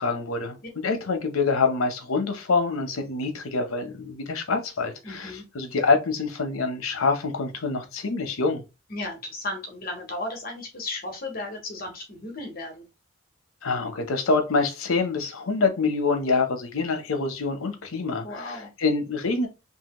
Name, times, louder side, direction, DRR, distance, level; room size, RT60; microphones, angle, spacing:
voice 1, 0.0-8.6 13.6-19.5, left 4 dB, 85° left, 0.8 m, -26 dB
voice 2, 5.0-5.4 8.9-12.8 18.2-18.7, left 2 dB, 45° left, 0.9 m, -35 dB
2.8 x 2.7 x 2.9 m
head